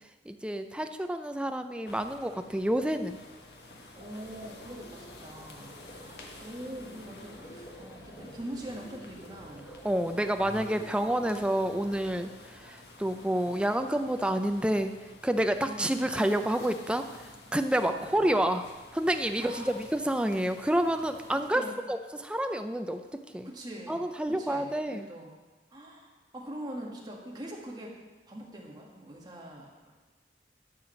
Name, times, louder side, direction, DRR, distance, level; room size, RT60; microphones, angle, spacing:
voice 1, 0.3-3.2 9.8-14.9 15.2-23.0 23.3-23.5 23.9-25.1, right 1 dB, 5° right, 7 dB, 0.5 m, -29 dB
sound 1, 1.9-21.5, left 2 dB, 65° left, 1.3 m, -51 dB
sound 2, 3.9-12.2, equal, 30° left, 2.0 m, -50 dB
voice 2, 4.0-9.7 15.7-16.1 17.8-18.3 19.4-19.8 21.5-21.7 23.4-24.0 24.3-25.3 25.7-28.0 28.3-29.9, right 1 dB, 25° right, -2 dB, 1.8 m, -43 dB
12.0 x 4.9 x 7.1 m, 1.3 s
head